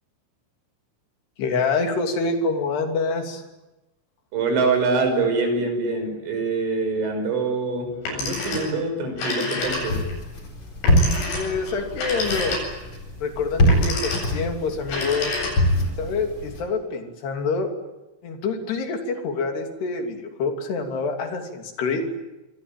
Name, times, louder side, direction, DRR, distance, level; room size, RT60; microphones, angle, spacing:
voice 1, 1.4-3.4 11.3-12.6 13.2-15.3 16.0-17.7 18.2-22.0, left 4 dB, 55° left, 4 dB, 4.8 m, -26 dB
voice 2, 4.3-10.0, right 3 dB, 70° right, 6 dB, 8.1 m, -24 dB
Telephone, 7.9-8.8 9.1-10.2 10.8-12.9 13.6-14.4 14.8-15.9, left 2 dB, 85° left, 11.0 m, -29 dB
sound 1, 9.6-16.6, equal, 25° left, 4.9 m, -24 dB
27.0 x 23.5 x 9.1 m, 1.0 s
omnidirectional pair, 5.9 m